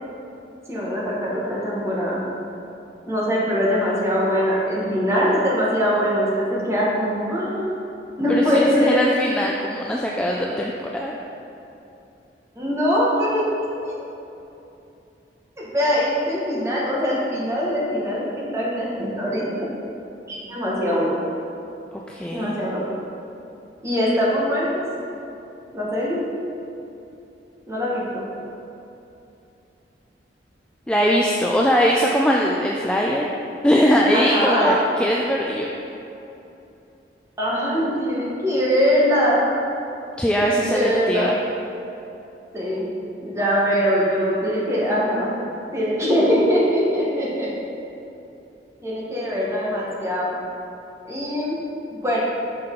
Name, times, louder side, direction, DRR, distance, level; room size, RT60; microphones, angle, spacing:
voice 1, 0.7-2.2 3.1-7.7 8.2-9.0 12.6-14.0 15.6-19.7 20.3-21.2 22.3-22.8 23.8-24.8 25.7-26.2 27.7-28.2 34.1-34.8 37.4-39.4 40.4-41.3 42.5-42.9 43.2-45.3 45.7-47.5 48.8-50.4 51.0-51.6 51.9-52.2, equal, 15° right, -6 dB, 1.2 m, -22 dB
voice 2, 8.3-11.1 22.1-22.5 30.9-33.3 33.6-35.7 40.2-41.3, equal, 5° left, -2 dB, 0.3 m, -21 dB
6.6 x 5.8 x 3.7 m, 2.8 s
head